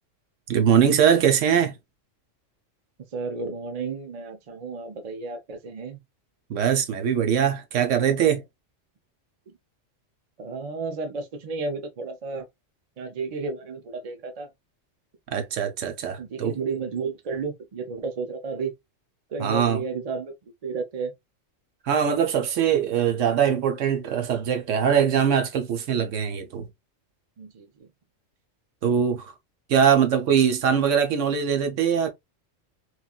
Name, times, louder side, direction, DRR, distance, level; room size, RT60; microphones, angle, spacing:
voice 1, 0.5-1.8 6.5-8.4 15.3-16.5 19.4-19.8 21.9-26.7 28.8-29.3 29.7-32.1, right 8 dB, 75° right, 1.0 m, -22 dB
voice 2, 3.1-6.0 9.5-9.6 10.4-12.5 13.0-14.5 16.2-18.7 19.3-21.1 27.4-27.9, right 4 dB, 40° right, 0.6 m, -32 dB
3.1 x 2.5 x 2.3 m
omnidirectional pair, 1.3 m